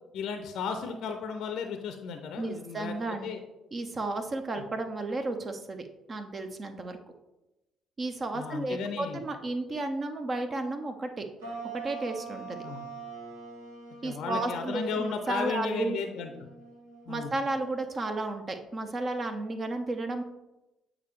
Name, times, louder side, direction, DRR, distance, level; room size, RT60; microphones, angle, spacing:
voice 1, 0.1-2.9 3.2-3.4 8.3-9.2 12.6-12.9 14.0-16.3 17.1-17.3, left 6 dB, 60° left, 6 dB, 0.5 m, -34 dB
voice 2, 2.4-3.3 3.7-7.0 8.0-11.3 11.7-12.6 14.0-16.0 17.1-20.2, right 2 dB, 35° right, 6 dB, 0.8 m, -33 dB
sound 1, 11.4-18.1, right 5 dB, 80° right, 1.5 m, -44 dB
8.3 x 4.9 x 3.3 m, 0.98 s
figure-of-eight pair, 45°, 0 cm